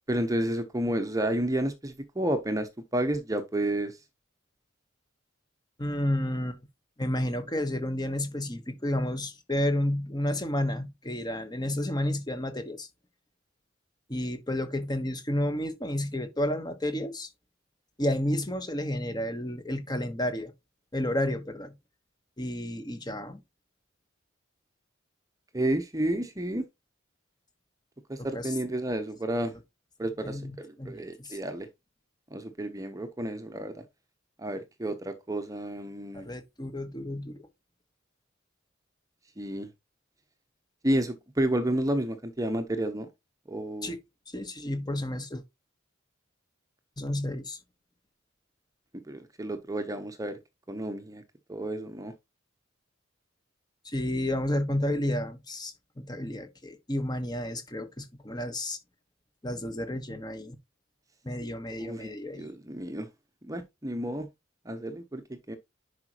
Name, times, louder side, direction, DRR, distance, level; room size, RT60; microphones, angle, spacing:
voice 1, 0.1-3.9 25.5-26.6 28.1-29.5 30.0-31.7 32.3-33.7 34.4-36.3 39.4-39.7 40.8-43.1 43.5-43.9 49.1-50.4 50.7-51.2 51.5-52.1 61.8-63.1 63.4-64.3 64.7-65.2 65.5-65.6, right 1 dB, 15° right, 0.9 m, -31 dB
voice 2, 5.8-6.7 7.0-12.9 14.1-17.3 18.0-20.5 20.9-21.7 22.4-23.4 28.2-28.5 30.2-31.4 36.1-37.5 43.8-44.0 44.3-45.4 47.0-47.6 53.8-58.8 59.4-60.6 61.2-62.5, left 1 dB, 20° left, 1.2 m, -31 dB
10.5 x 5.0 x 3.0 m
head